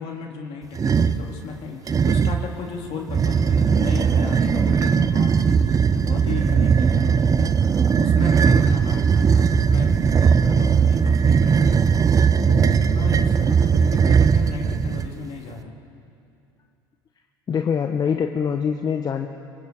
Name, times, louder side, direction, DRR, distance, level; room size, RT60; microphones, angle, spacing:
voice 1, 0.0-7.5 7.9-15.7, left 4 dB, 60° left, 0 dB, 3.5 m, -35 dB
sound 1, 0.7-1.3 1.9-2.5 3.1-15.1, right 6 dB, 30° right, 0.9 m, -18 dB
voice 2, 17.5-19.3, left 7 dB, 35° left, 5 dB, 1.1 m, -24 dB
25.5 x 23.5 x 4.7 m, 2.5 s
hypercardioid pair, 85°, 11 cm